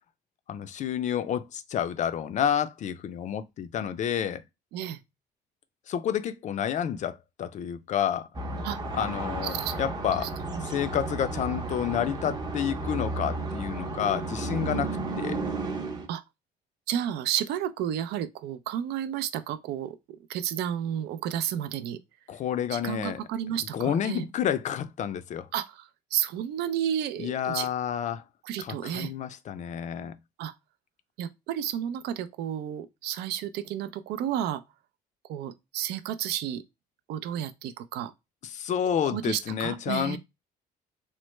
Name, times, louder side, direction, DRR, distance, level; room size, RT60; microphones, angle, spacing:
voice 1, 0.5-4.4 5.9-8.3 8.9-14.9 15.2-15.4 22.3-23.2 23.7-25.5 27.2-28.2 28.6-30.1 38.4-40.2, left 9 dB, 45° left, 0.4 m, -29 dB
sound 1, 8.3-16.1, right 2 dB, 25° right, 0.6 m, -33 dB
voice 2, 9.5-9.8 10.2-10.7 16.1-16.2 16.9-20.0 20.3-22.0 22.7-24.2 25.5-25.8 26.1-27.7 28.4-29.1 30.4-30.5 31.2-34.6 35.3-36.6 37.1-38.1 39.1-40.2, right 10 dB, 75° right, 0.4 m, -32 dB
3.1 x 2.0 x 3.1 m
cardioid pair, 110°, 17 cm